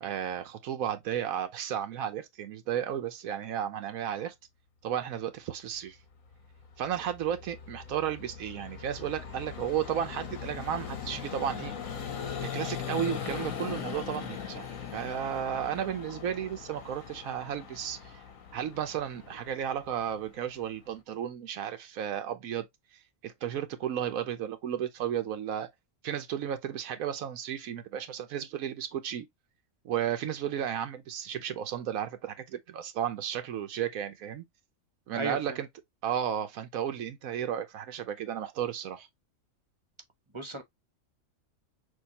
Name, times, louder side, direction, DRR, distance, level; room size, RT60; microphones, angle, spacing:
voice 1, 0.0-4.3 4.8-6.0 6.8-11.7 12.4-14.7 14.9-18.2 18.5-22.6 23.2-25.7 26.0-29.3 29.8-34.4 35.1-35.7 36.0-39.1, right 9 dB, 90° right, 1.2 m, -33 dB
Vehicle, 6.3-20.9, left 7 dB, 75° left, 1.5 m, -40 dB
voice 2, 35.1-35.6 40.3-40.6, right 3 dB, 25° right, 0.9 m, -34 dB
6.3 x 2.6 x 2.9 m
omnidirectional pair, 1.4 m